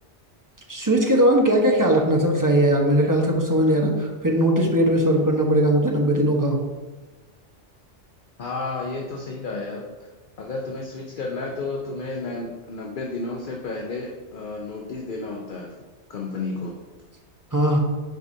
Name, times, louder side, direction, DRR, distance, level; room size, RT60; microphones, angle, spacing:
voice 1, 0.7-6.6 17.5-17.8, right 1 dB, 20° right, 0 dB, 0.9 m, -19 dB
voice 2, 8.4-9.8 10.4-15.7 16.1-16.7, left 3 dB, 50° left, 0 dB, 0.8 m, -31 dB
8.0 x 4.8 x 2.7 m, 1.3 s
omnidirectional pair, 1.2 m